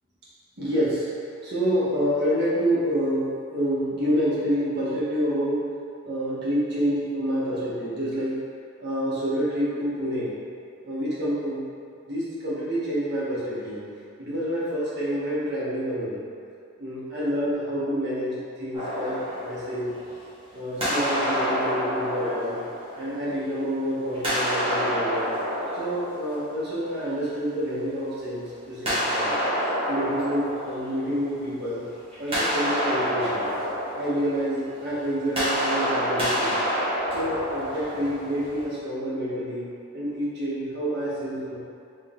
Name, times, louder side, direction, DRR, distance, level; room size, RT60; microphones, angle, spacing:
voice 1, 0.6-1.1 1.4-5.7 6.0-8.4 8.8-10.3 10.8-11.6 12.1-13.8 14.2-16.2 16.8-19.9 20.5-22.6 23.0-25.3 25.7-29.4 29.9-31.8 32.2-33.5 33.9-36.6 37.1-41.6, equal, 55° right, -9 dB, 1.4 m, -28 dB
sound 1, 18.7-20.4 20.8-23.6 24.1-27.0 28.8-31.6 31.9-38.6, equal, 25° right, 1.3 m, -28 dB
3.9 x 3.3 x 3.8 m, 2.5 s
head